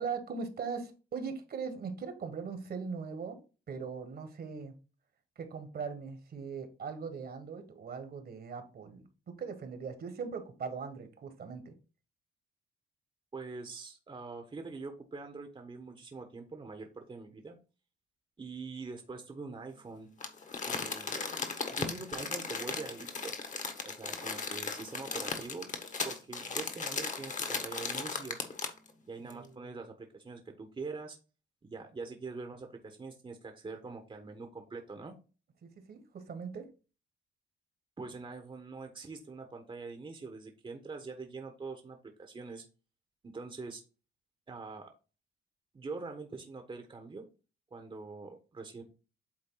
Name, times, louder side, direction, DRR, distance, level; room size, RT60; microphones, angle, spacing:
voice 1, 0.0-3.4 3.7-4.7 5.3-11.7 29.2-29.7 35.6-36.7, right 5 dB, 50° right, 8 dB, 1.6 m, -40 dB
voice 2, 13.3-17.6 18.4-20.1 20.6-21.2 21.7-23.4 23.8-25.7 26.0-28.4 29.0-31.2 31.6-35.1 38.0-42.6 43.2-43.8 44.5-44.9 45.7-47.3 47.7-48.8, right 4 dB, 25° right, 5 dB, 1.2 m, -44 dB
Crumpling crinkling, 20.2-28.9 29.3-29.4, left 4 dB, 40° left, 1.5 m, -37 dB
8.7 x 3.7 x 3.9 m, 0.33 s
cardioid pair, 90°, 20 cm